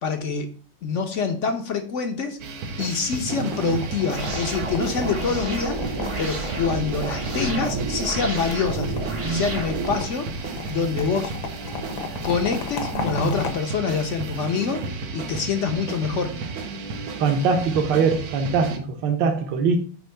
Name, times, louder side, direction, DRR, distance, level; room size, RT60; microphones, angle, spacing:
voice 1, 0.0-0.5 0.8-2.4 2.8-8.9 9.2-11.3 12.2-14.8 15.1-16.3, left 5 dB, 55° left, 0.8 m, -26 dB
sound 1, 2.4-18.8, right 4 dB, 90° right, 1.8 m, -32 dB
sound 2, 3.5-13.5, left 5 dB, 75° left, 1.9 m, -36 dB
sound 3, 4.1-10.0, right 3 dB, 35° right, 0.5 m, -31 dB
voice 2, 17.2-19.8, right 5 dB, 70° right, 1.6 m, -22 dB
9.1 x 3.1 x 5.6 m
omnidirectional pair, 2.2 m